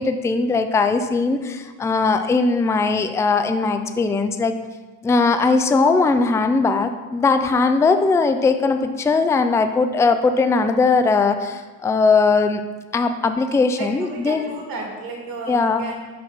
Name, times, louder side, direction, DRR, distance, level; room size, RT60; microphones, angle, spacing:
voice 1, 0.0-4.5 5.0-12.6 12.9-14.4 15.5-15.8, left 4 dB, 5° left, 8 dB, 0.4 m, -19 dB
voice 2, 13.7-16.0, right 3 dB, 55° right, 0 dB, 2.2 m, -33 dB
5.8 x 5.0 x 5.6 m, 1.3 s
supercardioid pair, 80°, 43 cm